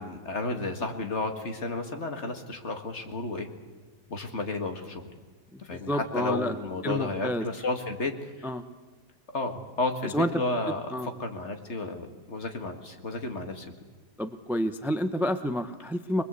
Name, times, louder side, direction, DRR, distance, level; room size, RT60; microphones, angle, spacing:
voice 1, 0.0-3.5 4.1-5.1 5.6-8.5 9.3-10.9 11.2-13.7, left 3 dB, 45° left, 5 dB, 2.2 m, -32 dB
voice 2, 5.5-6.5 6.8-7.5 8.4-8.6 10.0-10.4 10.9-11.1 14.2-16.2, equal, ahead, 10 dB, 0.5 m, -29 dB
24.0 x 20.5 x 8.2 m, 1.2 s
omnidirectional pair, 1.7 m